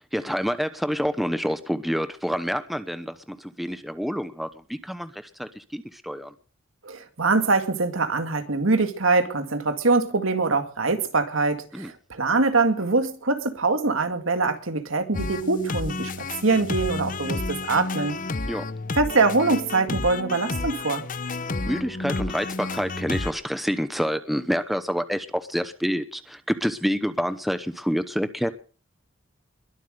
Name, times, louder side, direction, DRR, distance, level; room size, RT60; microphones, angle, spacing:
voice 1, 0.1-6.3 11.7-11.9 18.5-18.7 21.7-28.5, equal, ahead, 10 dB, 0.8 m, -28 dB
voice 2, 6.8-16.1 16.4-18.2 19.0-21.0, right 3 dB, 75° right, 7 dB, 2.2 m, -23 dB
sound 1, 15.1-23.3, left 3 dB, 40° left, 0.8 m, -31 dB
22.0 x 8.2 x 6.5 m, 0.41 s
head